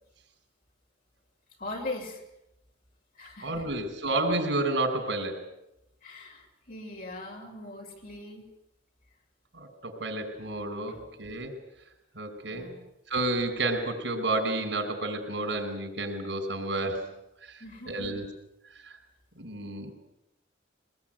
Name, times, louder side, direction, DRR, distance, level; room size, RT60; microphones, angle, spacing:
voice 1, 1.6-2.2 3.1-3.7 6.0-8.5 10.9-11.0 12.5-12.8 17.6-18.2, left 2 dB, 50° left, 1 dB, 6.5 m, -40 dB
voice 2, 3.4-5.5 9.5-11.6 12.2-12.7 13.1-17.1 17.4-18.3 18.6-19.0 19.4-19.9, right 2 dB, 85° right, 5 dB, 5.3 m, -31 dB
23.5 x 20.5 x 9.2 m, 0.86 s
head